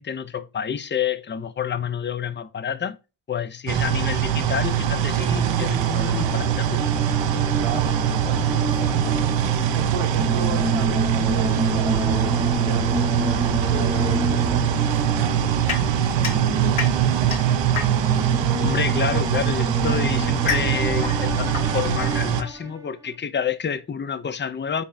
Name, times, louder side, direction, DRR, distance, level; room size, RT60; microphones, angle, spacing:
voice 1, 0.0-3.0 3.3-6.8 18.5-24.8, left 7 dB, 25° left, 0.4 m, -28 dB
sound 1, 3.7-22.4, right 9 dB, 60° right, 0.5 m, -22 dB
sound 2, 4.2-22.9, right 1 dB, 5° right, 0.7 m, -30 dB
voice 2, 7.6-9.1 9.7-17.3, right 6 dB, 90° right, 0.8 m, -35 dB
sound 3, 15.7-18.3 19.3-22.7, left 6 dB, 75° left, 0.9 m, -32 dB
4.0 x 3.4 x 2.5 m
cardioid pair, 40°, 50 cm